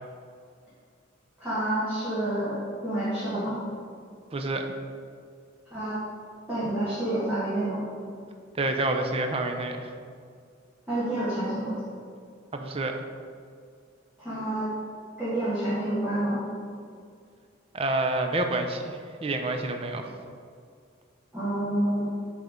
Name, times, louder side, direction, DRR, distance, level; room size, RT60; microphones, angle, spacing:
voice 1, 1.4-2.6 2.8-3.6 5.7-6.0 6.5-7.8 10.9-11.7 14.2-14.7 15.2-16.4 21.3-22.1, right 1 dB, 10° right, -13 dB, 1.8 m, -28 dB
voice 2, 4.3-4.7 8.6-9.9 12.5-13.0 17.7-20.1, right 2 dB, 30° right, 5 dB, 0.5 m, -28 dB
7.9 x 3.5 x 5.0 m, 2.2 s
head